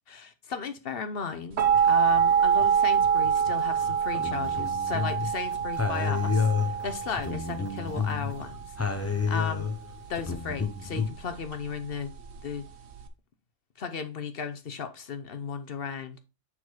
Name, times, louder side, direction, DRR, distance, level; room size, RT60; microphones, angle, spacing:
voice 1, 0.1-9.7 10.1-12.1 12.4-12.7 13.8-16.2, left 6 dB, 50° left, 1.0 m, -35 dB
sound 1, 1.6-13.1, right 7 dB, 60° right, 1.0 m, -26 dB
sound 2, 1.7-8.5, left 1 dB, 20° right, 4.4 m, -49 dB
sound 3, 3.8-5.3 5.8-8.3 8.8-11.1, left 5 dB, 15° left, 0.6 m, -29 dB
7.1 x 4.2 x 4.4 m
omnidirectional pair, 1.3 m